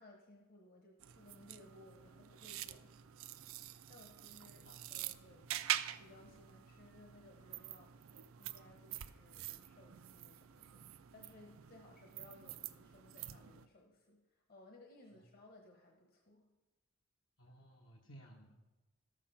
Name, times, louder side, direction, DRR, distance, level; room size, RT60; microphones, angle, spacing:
voice 1, 0.0-3.1 3.3-3.4 3.9-5.6 6.0-10.8 11.1-16.5, left 1 dB, 50° left, 1 dB, 1.1 m, -61 dB
sound 1, 1.0-13.7, right 12 dB, 80° right, 0.5 m, -46 dB
voice 2, 17.4-18.6, right 1 dB, 70° left, -1 dB, 1.2 m, -59 dB
13.0 x 7.4 x 5.8 m, 1.2 s
head